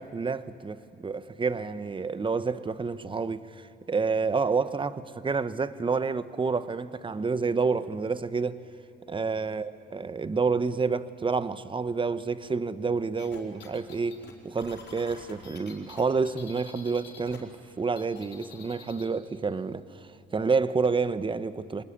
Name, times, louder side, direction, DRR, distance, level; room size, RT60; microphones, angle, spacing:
voice 1, 0.0-8.6 9.1-19.8 20.3-21.8, right 4 dB, 25° right, 1.0 m, -29 dB
sound 1, 13.2-17.4 17.7-19.1, left 6 dB, 60° left, 5.1 m, -48 dB
25.0 x 20.0 x 9.9 m
cardioid pair, 90°, 20 cm